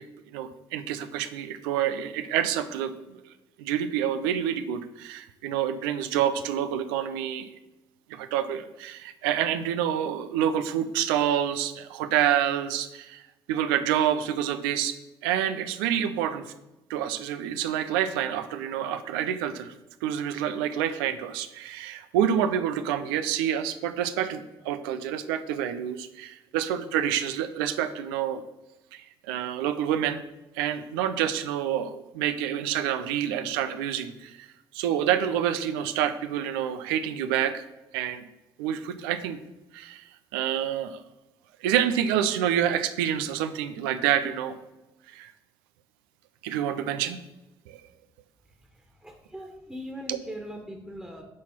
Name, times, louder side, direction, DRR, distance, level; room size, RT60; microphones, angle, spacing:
voice 1, 0.3-3.2 3.6-7.5 8.1-13.2 13.5-14.9 15.2-16.5 16.9-19.7 20.0-28.4 28.9-30.2 30.6-34.5 34.7-37.6 37.9-38.2 38.6-39.4 39.7-40.0 40.3-41.0 41.6-44.6 45.1-45.3 46.4-47.2 47.7-47.8 50.1-50.2, right 10 dB, 85° right, 10 dB, 0.5 m, -27 dB
voice 2, 48.6-51.2, equal, 5° right, 1 dB, 1.5 m, -41 dB
7.4 x 4.1 x 5.9 m, 1.0 s
hypercardioid pair, 55°, 12 cm